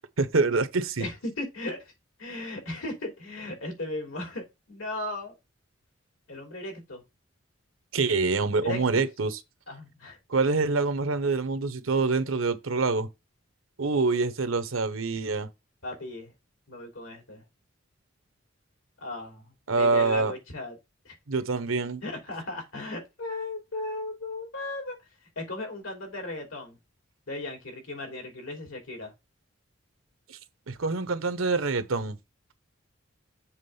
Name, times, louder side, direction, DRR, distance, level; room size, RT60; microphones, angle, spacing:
voice 1, 0.2-1.1 7.9-9.4 10.3-13.1 13.8-15.5 19.7-20.3 21.3-22.0 30.3-30.4 30.7-32.2, right 3 dB, 80° right, 0.9 m, -26 dB
voice 2, 1.0-1.9 2.2-5.3 6.3-7.0 8.6-9.1 9.7-10.2 15.8-16.3 16.7-17.4 19.0-20.7 21.0-21.1 22.0-25.0 25.3-26.8 27.3-29.1, left 2 dB, 80° left, 3.1 m, -36 dB
7.4 x 3.5 x 5.4 m
head